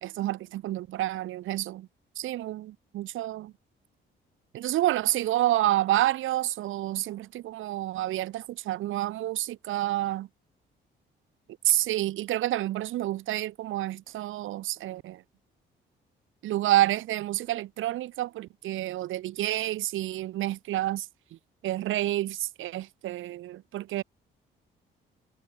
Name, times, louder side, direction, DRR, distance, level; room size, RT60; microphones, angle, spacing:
voice 1, 0.0-1.9 2.2-2.7 2.9-3.5 4.5-10.3 11.6-15.2 16.4-21.1 21.6-24.0, right 14 dB, 80° right, 1.5 m, -29 dB
cardioid pair, 90°, 20 cm